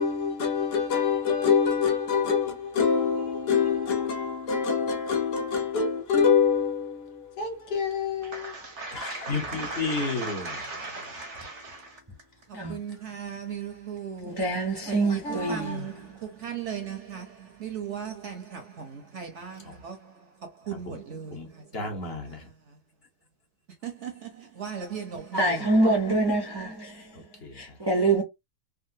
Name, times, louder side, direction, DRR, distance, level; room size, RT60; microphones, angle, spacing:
voice 1, 0.0-8.5 15.2-15.8, left 6 dB, 85° left, 1.4 m, -25 dB
voice 2, 8.2-12.0 12.7-14.4 15.1-20.1 20.6-21.7 23.8-25.4, right 6 dB, 60° right, 0.8 m, -37 dB
voice 3, 8.9-10.6 19.6-19.7 20.7-21.0 21.3-22.5 27.1-27.8, left 3 dB, 45° left, 1.1 m, -33 dB
voice 4, 14.2-16.1 25.3-27.2 27.5-28.2, right 2 dB, 35° right, 0.4 m, -26 dB
3.7 x 2.1 x 2.6 m
omnidirectional pair, 1.7 m